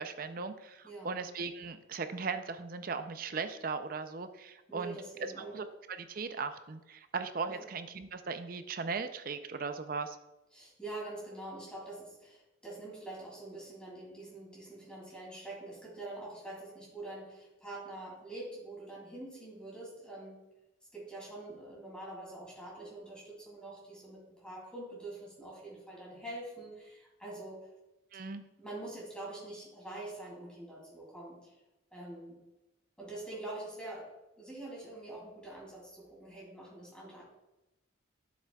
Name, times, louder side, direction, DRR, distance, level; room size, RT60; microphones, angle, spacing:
voice 1, 0.0-10.2 28.1-28.4, right 4 dB, 45° right, 9 dB, 0.5 m, -38 dB
voice 2, 0.8-1.2 4.7-5.6 7.5-7.6 10.5-20.4 20.9-27.7 28.6-31.6 31.9-32.4 33.0-37.2, right 2 dB, 5° left, -4 dB, 2.7 m, -45 dB
11.0 x 7.3 x 2.3 m, 0.96 s
head